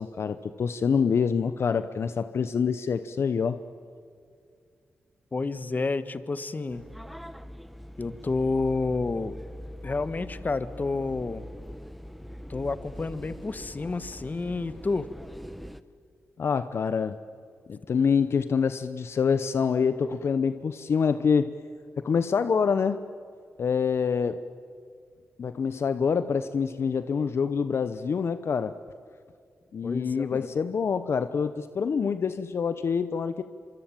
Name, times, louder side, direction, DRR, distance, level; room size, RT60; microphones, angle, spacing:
voice 1, 0.0-3.6 16.4-17.2 17.7-21.5 22.0-23.0 23.6-24.4 25.4-28.7 29.7-33.4, left 6 dB, 65° left, 11 dB, 0.9 m, -26 dB
voice 2, 5.3-6.8 8.0-9.3 9.8-11.5 12.5-15.1 29.8-30.5, left 3 dB, 40° left, 13 dB, 1.4 m, -30 dB
sound 1, 6.7-15.8, equal, ahead, 1.2 m, -42 dB
25.5 x 25.0 x 9.0 m, 2.3 s
cardioid pair, 55°, 5 cm